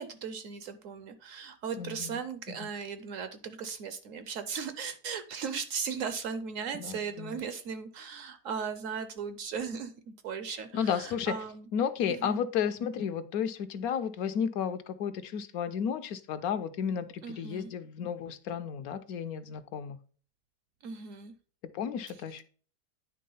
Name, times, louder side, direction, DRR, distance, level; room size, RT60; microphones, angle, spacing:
voice 1, 0.0-11.7 12.1-12.4 17.2-17.7 20.8-21.3, right 6 dB, 65° right, 11 dB, 0.9 m, -37 dB
voice 2, 1.8-2.2 6.7-7.4 10.7-11.3 11.7-20.0 21.7-22.4, left 8 dB, 70° left, 11 dB, 1.0 m, -33 dB
9.4 x 3.5 x 5.4 m, 0.42 s
omnidirectional pair, 1.7 m